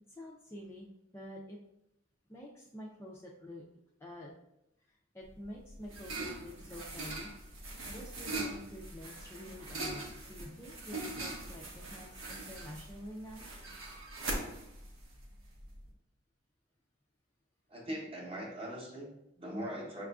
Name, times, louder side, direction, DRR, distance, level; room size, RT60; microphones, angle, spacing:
voice 1, 0.1-0.9 1.1-1.6 2.3-3.6 4.0-4.3 4.9-7.3 7.9-10.0 10.3-13.5, equal, 10° left, -4 dB, 0.3 m, -48 dB
sound 1, 5.3-15.9, right 2 dB, 80° right, 0.7 m, -42 dB
voice 2, 17.7-20.1, equal, 25° right, -1 dB, 0.7 m, -41 dB
6.3 x 2.4 x 2.3 m, 0.82 s
head